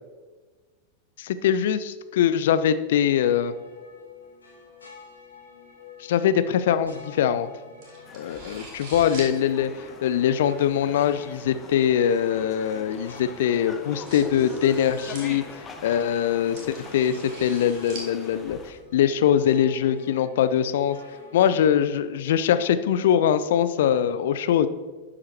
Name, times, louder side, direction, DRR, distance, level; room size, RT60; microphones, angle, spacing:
voice 1, 1.2-3.5 6.0-7.5 8.1-9.7 10.0-21.0 21.3-24.7, left 9 dB, 55° left, 13 dB, 0.5 m, -22 dB
sound 1, 2.9-21.5, left 5 dB, 75° left, 2.8 m, -48 dB
sound 2, 6.3-19.1, right 2 dB, 45° right, 2.2 m, -45 dB
sound 3, 8.1-18.7, left 4 dB, 20° left, 1.0 m, -44 dB
12.0 x 7.6 x 3.1 m, 1.4 s
figure-of-eight pair, 90°, 0 cm